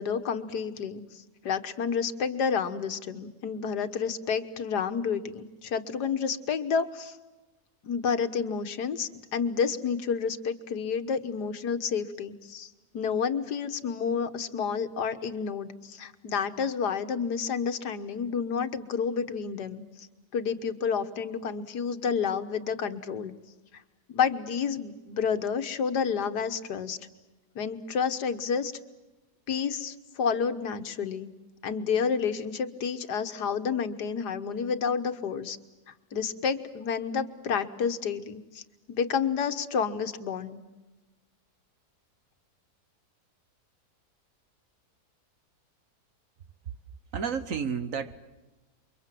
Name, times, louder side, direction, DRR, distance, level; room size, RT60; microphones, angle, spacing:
voice 1, 0.0-7.2 7.8-19.8 20.3-23.3 24.1-27.0 27.6-28.7 29.5-31.3 31.6-35.6 35.9-38.6 38.9-40.6, left 6 dB, 85° left, 9 dB, 1.8 m, -30 dB
voice 2, 47.1-48.1, right 6 dB, 55° right, 10 dB, 1.5 m, -31 dB
29.0 x 24.0 x 7.6 m, 1.1 s
omnidirectional pair, 1.7 m